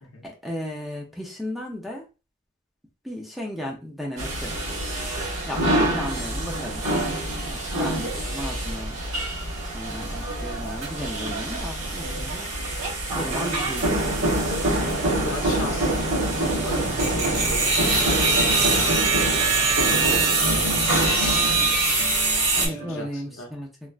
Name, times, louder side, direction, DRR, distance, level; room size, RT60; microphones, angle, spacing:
voice 1, 0.2-2.1 3.0-4.5 5.5-6.9 7.6-9.0 9.7-12.5 13.1-14.0 19.1-19.4 22.6-23.7, left 1 dB, ahead, 0 dB, 0.5 m, -34 dB
sound 1, 4.2-22.7, right 2 dB, 65° right, 1.5 m, -24 dB
sound 2, 13.3-23.1, right 1 dB, 80° right, 0.8 m, -39 dB
voice 2, 14.9-18.7 19.4-22.1 22.6-23.5, left 1 dB, 60° left, 2 dB, 0.8 m, -37 dB
3.2 x 2.4 x 2.3 m, 0.31 s
head